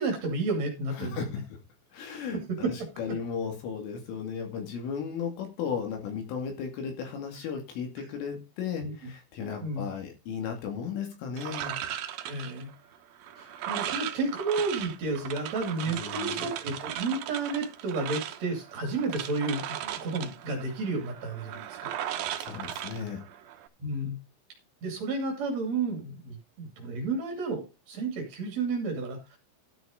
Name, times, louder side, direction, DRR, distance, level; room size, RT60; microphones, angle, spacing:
voice 1, 0.0-1.2 2.6-2.7 8.8-8.9 9.6-9.9 12.2-12.7 13.4-21.9 23.8-24.2 24.8-29.4, right 3 dB, 40° right, 3 dB, 3.1 m, -31 dB
voice 2, 1.0-1.6 1.9-11.8 15.9-16.5 22.0-23.2, left 6 dB, 80° left, 4 dB, 4.9 m, -35 dB
sound 1, 11.4-23.7, right 11 dB, 80° right, 2.1 m, -37 dB
12.5 x 6.2 x 5.1 m, 0.28 s
omnidirectional pair, 5.7 m